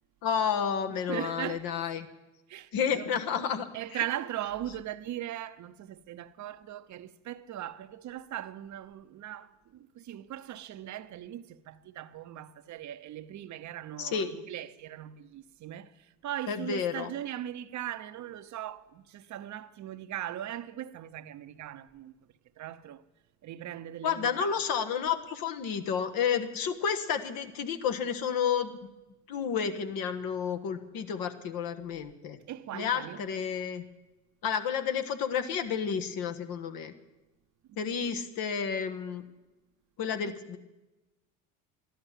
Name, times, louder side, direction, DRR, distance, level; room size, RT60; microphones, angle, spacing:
voice 1, 0.2-2.1 2.7-3.7 3.9-4.0 14.0-14.3 16.5-17.1 24.0-28.7 29.3-32.4 32.7-33.8 34.4-36.9 37.8-39.2 40.0-40.6, left 7 dB, 60° left, 1.4 m, -31 dB
voice 2, 1.1-1.7 2.5-3.2 3.7-22.1 22.6-23.0 23.4-24.6 32.5-33.2 37.7-37.9 40.2-40.3, right 12 dB, 45° right, 0.8 m, -39 dB
13.0 x 11.5 x 7.3 m
hypercardioid pair, 75°, 39 cm